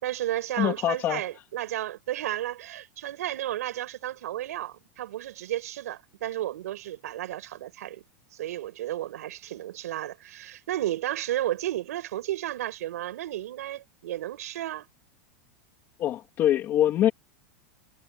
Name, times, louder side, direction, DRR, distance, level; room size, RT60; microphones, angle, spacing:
voice 1, 0.0-8.0 8.4-14.9, right 13 dB, 85° right, 5.5 m, -33 dB
voice 2, 0.6-1.2 16.0-17.1, left 12 dB, 25° left, 2.2 m, -24 dB
supercardioid pair, 165°, 8 cm